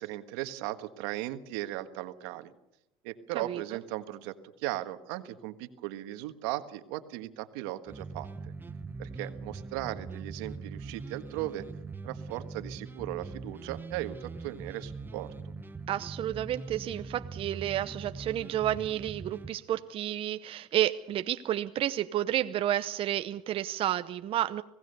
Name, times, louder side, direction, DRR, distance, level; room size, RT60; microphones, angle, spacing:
voice 1, 0.0-2.5 3.0-8.3 9.0-11.6 12.0-15.3, right 15 dB, 85° right, 10 dB, 1.5 m, -37 dB
sound 1, 7.9-19.5, right 4 dB, 15° right, 1.2 m, -42 dB
voice 2, 15.9-24.6, right 12 dB, 45° right, 10 dB, 0.8 m, -31 dB
26.0 x 17.0 x 6.8 m, 0.87 s
supercardioid pair, 105°, 13 cm